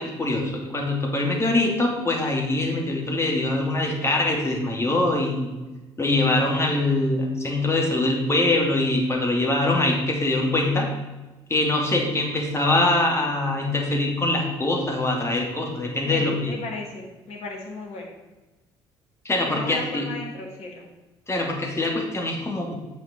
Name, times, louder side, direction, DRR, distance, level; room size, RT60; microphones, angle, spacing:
voice 1, 0.0-5.6 6.0-10.9 11.5-16.6 19.2-20.1 21.3-22.8, left 2 dB, 20° left, 0 dB, 2.7 m, -23 dB
voice 2, 16.0-18.1 19.4-20.9, left 3 dB, 55° left, 0 dB, 2.4 m, -35 dB
6.6 x 6.4 x 7.2 m, 1.1 s
figure-of-eight pair, 50°, 14 cm